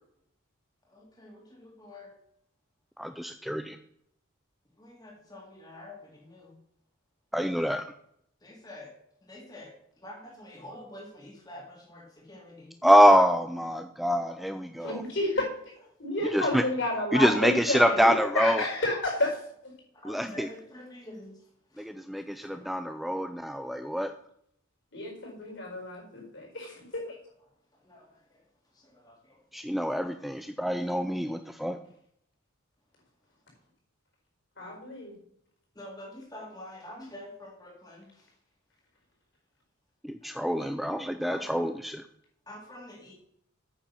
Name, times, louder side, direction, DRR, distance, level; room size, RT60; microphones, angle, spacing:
voice 1, 0.9-2.1 4.8-6.6 8.4-12.7 14.8-15.0 15.9-16.0 16.9-17.0 19.9-22.3 27.7-28.5 28.7-29.4 35.7-38.4 40.2-40.7 41.3-41.8 42.5-43.1, left 1 dB, 20° left, -1 dB, 2.3 m, -47 dB
voice 2, 3.0-3.8 7.3-7.8 12.8-15.0 16.3-16.6 17.1-18.6 20.1-20.5 21.8-24.1 29.5-31.8 40.0-42.0, equal, ahead, 8 dB, 0.4 m, -25 dB
voice 3, 14.8-15.5 16.0-19.4 19.6-19.7 24.9-27.0 34.6-35.1, left 2 dB, 60° left, -1 dB, 4.8 m, -31 dB
8.9 x 7.2 x 5.6 m, 0.71 s
head